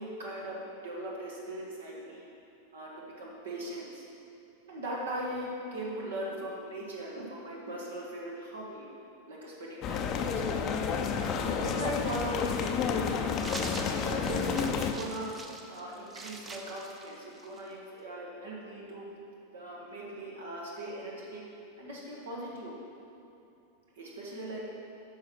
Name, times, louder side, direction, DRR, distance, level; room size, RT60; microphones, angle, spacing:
voice 1, 0.0-2.3 2.7-4.1 4.7-8.9 9.3-10.6 11.2-13.4 13.8-15.3 15.7-19.2 19.5-21.4 21.8-22.8 23.9-24.7, right 1 dB, 65° right, -3 dB, 1.5 m, -39 dB
sound 1, 9.8-14.9, left 6 dB, 35° left, 0.6 m, -30 dB
sound 2, 13.3-17.7, right 3 dB, 20° right, 0.7 m, -45 dB
10.5 x 6.3 x 4.6 m, 2.7 s
figure-of-eight pair, 90°, 0 cm